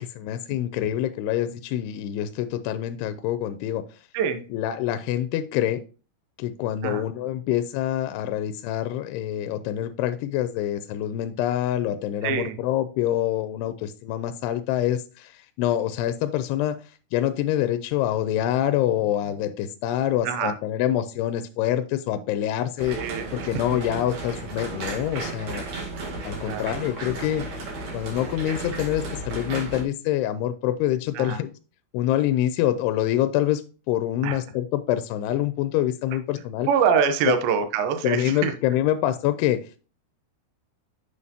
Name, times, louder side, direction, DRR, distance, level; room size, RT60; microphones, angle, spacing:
voice 1, 0.0-3.8 4.5-5.8 6.4-25.7 26.2-27.5 27.9-31.5 31.9-36.7 37.3-37.4 38.0-39.7, left 12 dB, 85° left, 11 dB, 2.5 m, -26 dB
voice 2, 4.1-4.4 6.8-7.0 12.2-12.6 20.2-20.6 22.9-23.5 26.5-26.7 31.1-31.4 34.2-34.4 36.7-38.5, right 6 dB, 75° right, 7 dB, 2.4 m, -24 dB
sound 1, 22.8-29.8, right 2 dB, 55° right, 3.0 m, -34 dB
7.2 x 6.3 x 2.8 m, 0.34 s
omnidirectional pair, 4.7 m